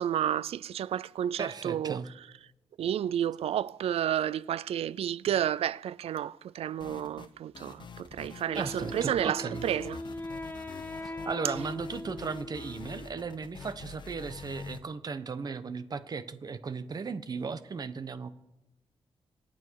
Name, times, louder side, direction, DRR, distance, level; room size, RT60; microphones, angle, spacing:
voice 1, 0.0-2.0 2.8-10.0, right 10 dB, 85° right, 0.4 m, -31 dB
voice 2, 1.4-2.1 8.5-9.7 11.2-18.3, right 5 dB, 40° right, 1.0 m, -36 dB
sound 1, 6.8-7.3 7.5-9.3 9.5-14.8, left 5 dB, 50° left, 1.2 m, -46 dB
Wind instrument woodwind instrument, 8.5-13.3, left 1 dB, 20° left, 1.2 m, -40 dB
sound 2, 9.6-10.0 11.0-11.4 12.1-12.5 13.5-13.9, equal, 5° right, 3.0 m, -58 dB
25.5 x 9.1 x 4.7 m
wide cardioid pair, 130°, 10 cm